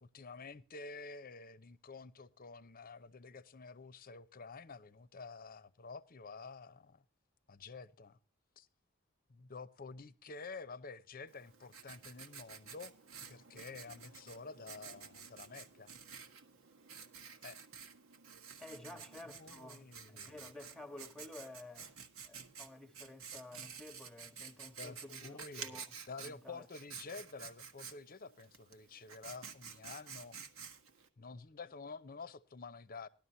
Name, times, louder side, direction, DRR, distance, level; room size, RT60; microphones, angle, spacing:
voice 1, 0.0-7.0 7.5-8.2 8.6-8.7 9.3-15.9 17.4-17.6 18.9-19.0 19.3-20.4 24.8-25.8 26.1-30.4 31.2-33.1, left 4 dB, 45° left, 0.8 m, -50 dB
Writing, 11.3-31.1, right 6 dB, 85° right, 1.5 m, -51 dB
voice 2, 18.6-21.9 22.2-26.7, left 1 dB, 5° left, 1.2 m, -52 dB
19.0 x 12.0 x 2.8 m
head